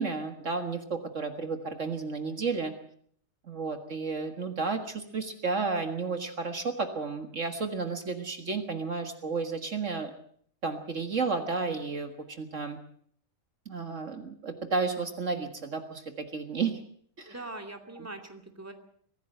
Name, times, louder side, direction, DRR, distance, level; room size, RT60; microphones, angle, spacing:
voice 1, 0.0-2.7 3.4-10.1 10.6-12.8 13.7-16.8 17.2-17.4 18.0-18.1, right 4 dB, 55° right, 7 dB, 2.0 m, -32 dB
voice 2, 17.2-18.7, right 2 dB, 10° right, 5 dB, 2.4 m, -42 dB
23.5 x 16.0 x 7.8 m, 0.62 s
omnidirectional pair, 1.5 m